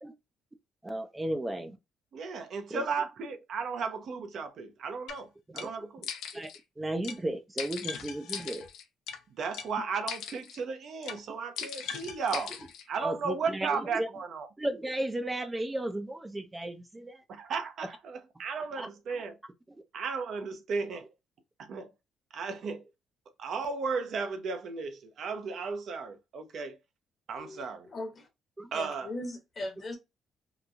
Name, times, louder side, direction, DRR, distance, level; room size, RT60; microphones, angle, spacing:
voice 1, 0.8-1.8 2.7-2.8 5.5-5.7 6.3-6.5 6.8-8.7 13.0-14.1 14.6-17.2 18.8-18.9 28.6-28.7, right 1 dB, 15° right, 0.4 m, -34 dB
voice 2, 2.1-6.1 9.4-12.5 12.9-14.5 17.3-19.4 19.9-21.1 21.6-21.9 22.3-22.9 23.4-26.8 27.3-27.9 28.7-29.1, right 5 dB, 65° right, 0.6 m, -35 dB
sound 1, 5.1-5.2 5.6-5.7 6.0-6.6 7.0-7.2 7.6-9.2 9.5-9.7 10.1-10.6 11.0-11.2 11.6-12.8, left 8 dB, 90° left, 0.5 m, -39 dB
voice 3, 27.4-28.3 28.7-30.0, left 2 dB, 45° left, 1.1 m, -39 dB
3.0 x 2.2 x 2.5 m
cardioid pair, 90°, 0 cm